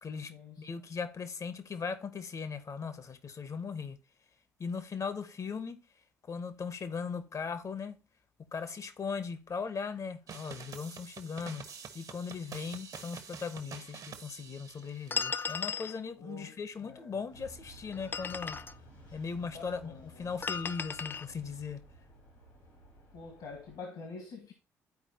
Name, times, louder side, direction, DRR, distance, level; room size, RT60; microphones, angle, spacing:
voice 1, 0.0-0.3 0.6-4.0 4.6-5.8 6.3-8.0 8.4-11.7 11.9-18.6 19.1-21.8, left 5 dB, 40° left, 1.0 m, -38 dB
sound 1, 10.3-15.2, right 6 dB, 50° right, 1.1 m, -47 dB
sound 2, 15.1-16.0 17.9-18.8 20.4-21.3, left 5 dB, 25° left, 0.3 m, -35 dB
voice 2, 16.2-16.5 16.8-17.1 19.5-20.0 23.1-24.5, left 4 dB, 60° left, 1.7 m, -46 dB
sound 3, 17.3-23.8, equal, 85° left, 3.5 m, -55 dB
12.0 x 4.8 x 2.9 m
figure-of-eight pair, 45°, 8 cm